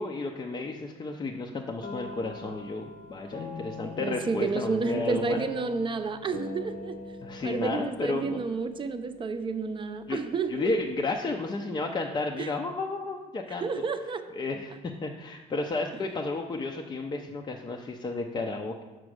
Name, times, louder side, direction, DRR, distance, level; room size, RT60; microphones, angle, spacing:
voice 1, 0.0-5.4 7.2-8.4 10.1-10.2 10.5-13.7 14.3-18.8, left 3 dB, 25° left, 1 dB, 0.5 m, -32 dB
sound 1, 1.8-9.5, left 3 dB, 60° left, 1.1 m, -42 dB
voice 2, 3.8-7.0 7.4-10.7 12.4-12.5 13.6-14.2, right 4 dB, 30° right, 8 dB, 0.6 m, -31 dB
6.1 x 4.3 x 6.4 m, 1.2 s
cardioid pair, 110°, 17 cm